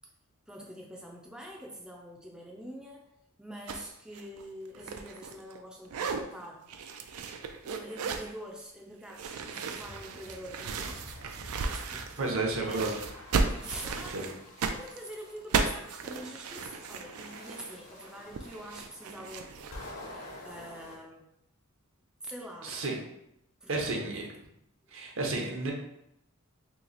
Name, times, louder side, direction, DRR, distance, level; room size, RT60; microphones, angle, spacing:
voice 1, 0.5-3.1 3.4-6.7 7.6-11.0 11.9-13.0 13.5-14.3 14.7-21.3 22.2-23.0 23.6-24.0 24.8-25.0, equal, 5° right, -1 dB, 0.4 m, -45 dB
sound 1, 3.7-3.9 4.1-5.6 5.9-6.2 6.7-8.3 9.1-12.4 12.7-19.7, right 4 dB, 85° right, 0.4 m, -35 dB
Fire, 9.6-14.2, left 1 dB, 45° left, 0.6 m, -50 dB
voice 2, 12.2-13.0 14.1-14.3 22.6-23.0 23.7-24.3 24.9-25.7, right 2 dB, 65° right, 0 dB, 0.7 m, -31 dB
sound 2, 13.0-15.5 16.1-21.0, left 1 dB, 75° left, 0.9 m, -49 dB
3.0 x 2.8 x 3.9 m, 0.80 s
head